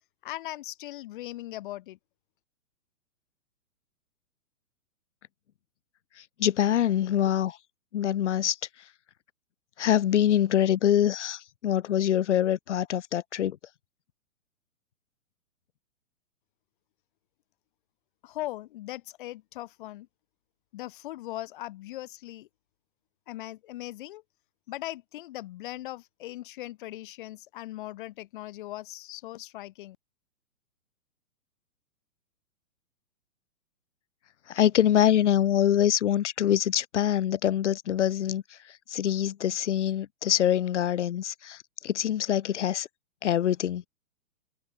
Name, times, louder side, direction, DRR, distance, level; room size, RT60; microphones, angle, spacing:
voice 1, 0.2-2.0 18.2-20.1 20.7-22.5 23.3-24.2 24.7-30.0, left 15 dB, 35° left, 4.4 m, -39 dB
voice 2, 6.4-7.6 7.9-8.6 9.8-13.6 34.5-38.4 38.9-41.6 41.8-42.9 43.2-43.8, left 10 dB, 55° left, 1.7 m, -24 dB
hypercardioid pair, 165°, 42 cm